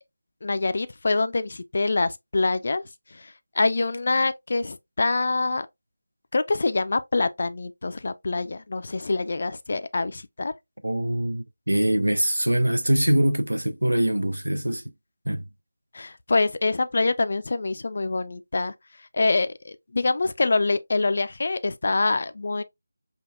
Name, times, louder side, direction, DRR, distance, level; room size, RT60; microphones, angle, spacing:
voice 1, 0.4-2.8 3.1-5.7 6.3-10.5 15.9-18.7 19.1-22.6, left 3 dB, 45° left, 0.3 m, -25 dB
voice 2, 10.8-14.8 15.3-15.5, right 1 dB, 75° right, 0.5 m, -23 dB
5.2 x 2.3 x 2.3 m
figure-of-eight pair, 160°, 0 cm